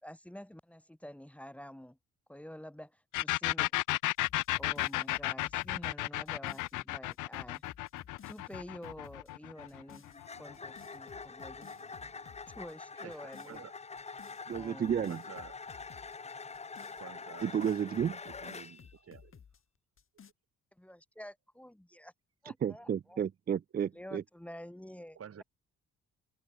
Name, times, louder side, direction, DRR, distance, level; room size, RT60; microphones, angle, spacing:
voice 1, 0.0-2.0 2.3-3.7 4.6-7.6 8.3-10.0 10.3-11.7 12.5-13.7 14.5-15.0 20.8-22.1 22.4-23.2 23.9-25.4, equal, 5° left, 5.9 m, -49 dB
sound 1, 3.1-10.7, left 19 dB, 85° left, 0.6 m, -33 dB
sound 2, 4.1-6.7 7.1-9.3 9.7-10.2 10.5-12.7 13.1-13.6 14.0-16.2 16.5-19.6 20.0-20.3, left 7 dB, 45° left, 2.7 m, -56 dB
sound 3, 9.4-18.9, left 4 dB, 20° left, 0.9 m, -46 dB
voice 2, 10.9-12.5 12.9-13.7 15.1-15.6 17.0-17.5 18.0-19.4 25.1-25.4, right 8 dB, 50° right, 4.3 m, -52 dB
voice 3, 14.5-15.2 17.4-18.1 22.6-24.2, right 8 dB, 30° right, 0.4 m, -32 dB
cardioid pair, 90°, 30 cm